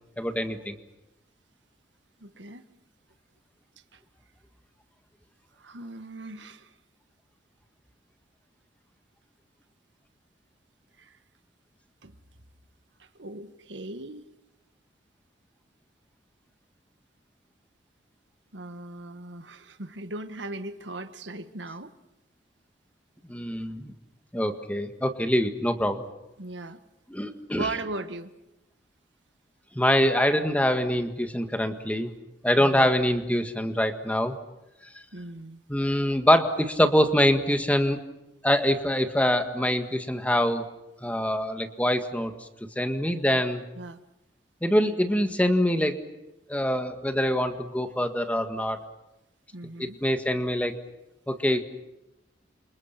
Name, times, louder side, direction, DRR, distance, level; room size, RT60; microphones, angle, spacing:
voice 1, 0.2-0.7 23.3-23.9 24.3-26.0 27.1-27.7 29.8-32.1 32.4-34.3 35.7-38.0 38.4-40.6 41.0-42.3 42.8-43.6 44.6-46.0 46.5-48.8 49.8-50.7 51.3-51.6, equal, 10° left, 1.8 m, -24 dB
voice 2, 2.2-2.6 3.9-4.0 5.6-6.7 11.0-11.2 12.0-12.2 13.0-14.2 18.5-21.9 26.4-26.8 27.6-28.3 32.6-32.9 35.1-35.6 43.8-44.0 49.5-50.0, right 2 dB, 85° right, 1.7 m, -38 dB
29.5 x 27.0 x 5.9 m
head